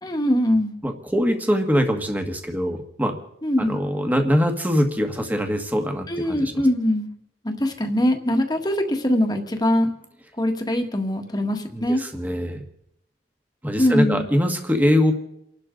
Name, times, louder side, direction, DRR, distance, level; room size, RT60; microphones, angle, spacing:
voice 1, 0.0-0.7 3.4-3.8 6.1-7.1 7.4-9.9 10.4-12.0 13.8-14.3, left 1 dB, 25° left, 4 dB, 1.7 m, -22 dB
voice 2, 0.8-3.2 3.6-6.5 11.7-12.6 13.6-15.1, equal, 10° right, 4 dB, 1.6 m, -23 dB
29.5 x 12.0 x 3.9 m, 0.80 s
head